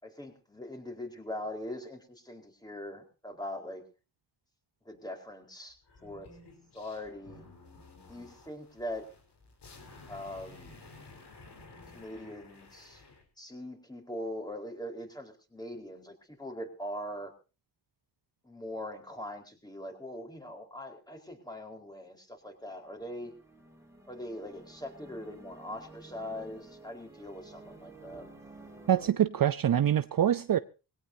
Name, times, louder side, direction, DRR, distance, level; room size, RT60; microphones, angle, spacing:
voice 1, 0.0-3.9 4.8-5.8 6.0-6.3 6.7-7.4 8.1-9.0 10.1-10.8 11.9-13.0 13.4-17.3 18.4-23.3 24.1-28.3, left 1 dB, 10° left, 4.4 m, -41 dB
sound 1, 5.8-13.2, left 3 dB, 65° left, 4.6 m, -53 dB
sound 2, 22.6-29.1, right 2 dB, 5° right, 4.0 m, -52 dB
voice 2, 28.9-30.6, right 10 dB, 50° right, 0.7 m, -25 dB
21.5 x 17.5 x 2.8 m
cardioid pair, 75°, 43 cm